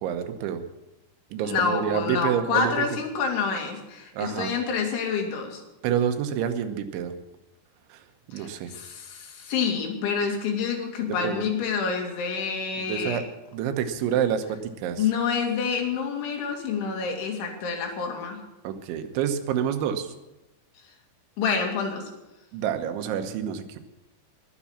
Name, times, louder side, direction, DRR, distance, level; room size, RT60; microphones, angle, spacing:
voice 1, 0.0-0.6 1.3-2.9 4.1-4.5 5.8-7.1 7.9-8.0 8.3-8.8 11.0-11.4 12.8-13.2 13.5-15.1 18.7-20.1 22.5-23.8, right 9 dB, 85° right, 8 dB, 3.4 m, -28 dB
voice 2, 1.4-5.6 8.3-13.2 15.0-18.4 21.4-22.1, left 5 dB, 90° left, 2 dB, 4.8 m, -28 dB
21.0 x 7.3 x 7.2 m, 0.97 s
omnidirectional pair, 5.2 m